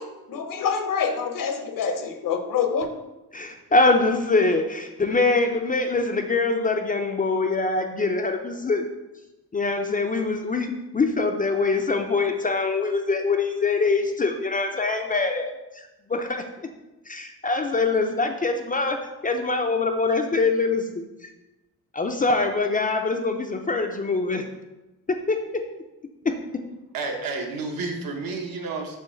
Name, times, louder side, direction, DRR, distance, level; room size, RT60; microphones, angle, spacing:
voice 1, 0.0-2.9, left 6 dB, 60° left, 6 dB, 0.8 m, -26 dB
voice 2, 3.3-8.9 9.5-15.8 16.1-16.4 17.1-19.0 19.2-21.3 21.9-24.4 25.1-25.4 26.2-26.3, left 3 dB, 25° left, 4 dB, 0.4 m, -24 dB
voice 3, 26.9-29.0, right 3 dB, 65° right, 2 dB, 1.2 m, -30 dB
7.0 x 3.0 x 5.6 m, 1.0 s
cardioid pair, 150°, 37 cm